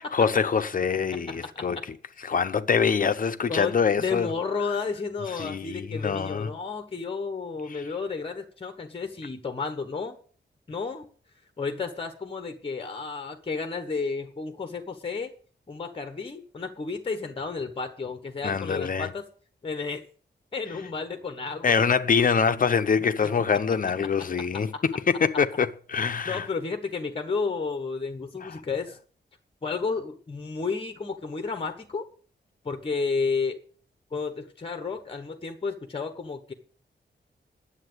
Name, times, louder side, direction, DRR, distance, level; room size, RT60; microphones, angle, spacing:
voice 1, 0.1-1.8 2.2-4.3 5.3-6.5 18.4-19.1 21.6-26.5, left 6 dB, 50° left, 0.7 m, -24 dB
voice 2, 1.1-1.7 2.2-2.3 3.5-10.2 10.7-11.1 11.6-15.3 15.7-19.2 19.6-20.0 20.5-21.8 24.3-24.4 26.2-29.0 29.6-32.1 32.6-33.6 34.1-36.5, left 4 dB, 30° left, 1.2 m, -32 dB
10.0 x 8.1 x 7.9 m
wide cardioid pair, 175°, 18 cm